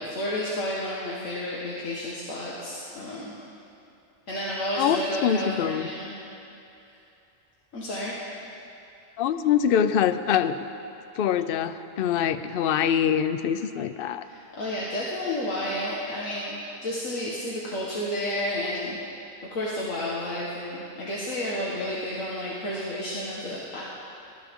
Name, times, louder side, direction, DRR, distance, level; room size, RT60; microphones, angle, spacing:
voice 1, 0.0-3.3 4.3-6.1 7.7-8.2 14.2-19.0 19.5-23.8, left 1 dB, 90° left, -6 dB, 1.9 m, -31 dB
voice 2, 4.8-5.9 9.2-10.6 11.1-14.3, left 9 dB, 60° left, 11 dB, 0.6 m, -24 dB
21.0 x 13.0 x 3.6 m, 2.7 s
omnidirectional pair, 1.3 m